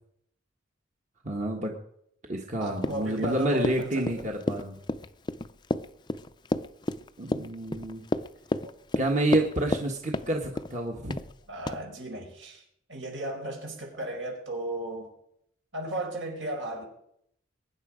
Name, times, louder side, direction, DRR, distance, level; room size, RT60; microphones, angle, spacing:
voice 1, 1.2-1.7 2.3-4.8 7.2-8.0 8.9-11.2, right 1 dB, 40° right, 2 dB, 1.5 m, -29 dB
voice 2, 2.6-4.3 11.5-12.6 12.9-15.1 15.7-16.8, right 1 dB, 75° right, 1 dB, 5.0 m, -35 dB
Run, 2.8-9.9 10.1-10.7 11.1-11.3 11.7-11.8, left 1 dB, 25° left, 0.5 m, -31 dB
22.5 x 9.8 x 5.1 m, 0.72 s
head